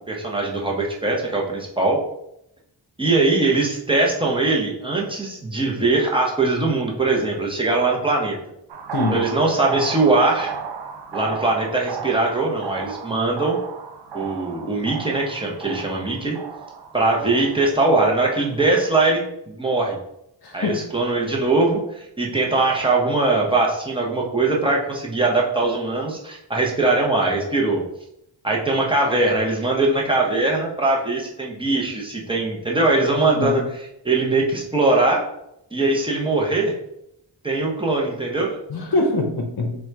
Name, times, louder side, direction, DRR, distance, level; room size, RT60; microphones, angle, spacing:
voice 1, 0.1-2.0 3.0-8.3 9.1-10.5 11.1-13.6 14.1-16.4 16.9-20.0 20.5-27.8 28.4-33.6 34.0-35.2 35.7-36.7 37.4-38.6, right 2 dB, 10° right, -1 dB, 0.6 m, -21 dB
sound 1, 8.7-18.9, right 6 dB, 70° right, 0.5 m, -34 dB
voice 2, 20.4-20.8 33.2-33.6 38.7-39.8, left 2 dB, 60° left, 2 dB, 0.7 m, -23 dB
3.7 x 2.2 x 4.4 m, 0.80 s
wide cardioid pair, 170°, 43 cm